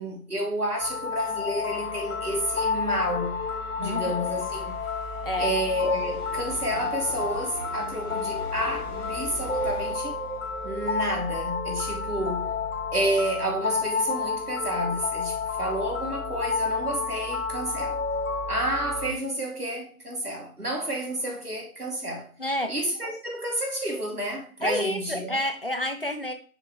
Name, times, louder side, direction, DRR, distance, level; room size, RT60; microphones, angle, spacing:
voice 1, 0.0-3.4 3.8-4.7 5.4-10.2 10.6-12.5 12.9-18.0 18.5-22.3 22.7-25.4, right 1 dB, 85° right, 2.9 m, -30 dB
sound 1, 0.8-19.1, left 4 dB, 60° left, 1.8 m, -30 dB
sound 2, 1.7-9.9, equal, 25° right, 2.9 m, -44 dB
voice 2, 3.8-4.2 5.2-5.5 22.4-22.7 24.6-26.3, left 1 dB, 40° left, 0.7 m, -29 dB
6.5 x 5.5 x 3.2 m
figure-of-eight pair, 160°, 44 cm